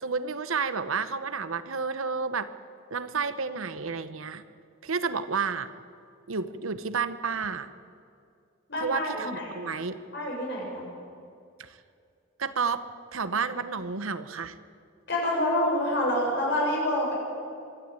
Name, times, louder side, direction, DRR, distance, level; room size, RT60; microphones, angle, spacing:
voice 1, 0.0-2.5 2.9-4.4 4.8-5.7 6.3-7.7 8.8-10.0 11.6-11.7 12.4-12.8 13.1-14.5, right 5 dB, 80° right, 13 dB, 0.9 m, -30 dB
voice 2, 8.7-9.5 10.1-10.8 15.1-17.1, left 1 dB, 55° left, -2 dB, 6.9 m, -27 dB
23.5 x 13.0 x 9.0 m, 2.4 s
head